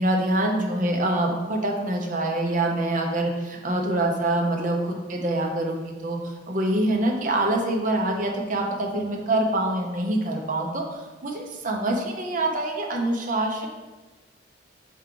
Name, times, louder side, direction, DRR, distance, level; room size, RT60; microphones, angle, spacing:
voice 1, 0.0-10.8 11.2-13.7, right 1 dB, 45° right, 1 dB, 0.8 m, -25 dB
5.3 x 4.6 x 3.8 m, 1.2 s
head